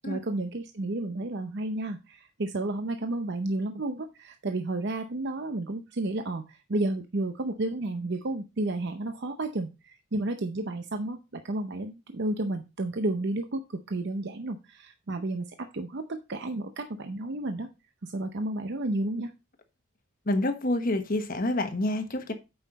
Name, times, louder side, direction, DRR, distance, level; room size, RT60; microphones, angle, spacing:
voice 1, 0.0-17.7 18.0-19.3, right 2 dB, 50° right, 7 dB, 0.7 m, -32 dB
voice 2, 20.3-22.3, left 1 dB, 40° left, 7 dB, 1.2 m, -28 dB
8.8 x 5.6 x 4.1 m, 0.27 s
head